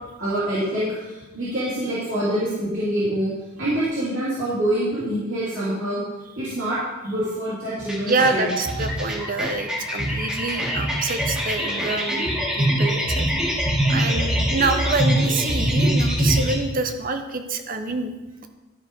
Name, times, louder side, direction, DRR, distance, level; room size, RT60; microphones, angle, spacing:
voice 1, 0.2-3.3 3.6-6.0 6.4-6.8 7.0-8.6, right 1 dB, 65° right, -10 dB, 2.8 m, -25 dB
sound 1, 7.8-16.6, equal, 5° right, 1.7 m, -23 dB
voice 2, 8.1-12.3 12.6-13.5 13.9-18.1, right 3 dB, 40° right, 7 dB, 0.7 m, -26 dB
12.5 x 4.4 x 5.3 m, 1.1 s
head